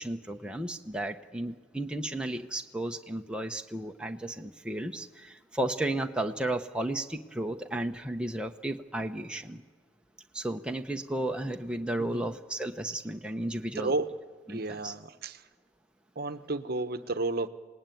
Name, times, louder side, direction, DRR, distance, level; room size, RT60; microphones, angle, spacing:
voice 1, 0.0-9.6 10.3-13.9 14.5-14.9, right 1 dB, 5° right, 3 dB, 0.9 m, -33 dB
voice 2, 13.8-14.1 14.5-15.4 16.2-17.5, right 3 dB, 55° right, 10 dB, 1.0 m, -32 dB
27.0 x 19.0 x 9.2 m, 1.4 s
head